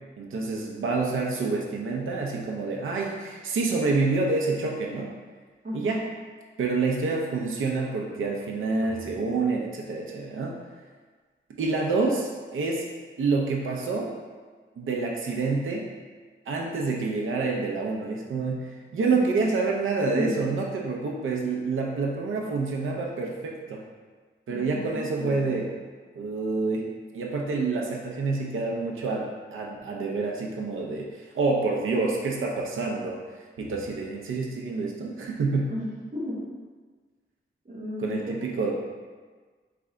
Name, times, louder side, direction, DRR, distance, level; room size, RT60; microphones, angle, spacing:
voice 1, 0.2-5.1 5.7-6.0 6.6-10.6 11.6-12.9 13.2-14.1 14.8-15.9 16.5-23.8 24.5-25.7 26.1-26.9 27.1-33.2 33.6-35.7 38.0-38.7, right 3 dB, 80° right, -1 dB, 0.5 m, -27 dB
voice 2, 5.6-6.0 19.1-19.4 20.1-20.3 24.5-25.6 35.7-36.4 37.6-38.4, equal, 40° right, -7 dB, 1.3 m, -34 dB
3.7 x 3.3 x 3.7 m, 1.5 s
wide cardioid pair, 120°, 20 cm